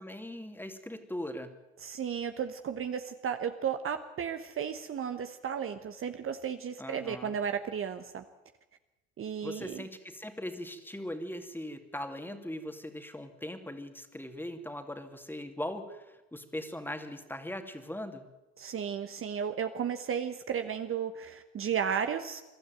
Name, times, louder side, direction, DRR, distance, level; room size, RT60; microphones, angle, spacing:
voice 1, 0.0-1.5 6.8-7.4 9.4-18.2, left 1 dB, 5° left, 7 dB, 2.5 m, -40 dB
voice 2, 1.8-8.2 9.2-9.8 18.6-22.4, right 7 dB, 40° right, 8 dB, 1.1 m, -34 dB
22.0 x 12.5 x 9.2 m, 1.1 s
hypercardioid pair, 70°, 34 cm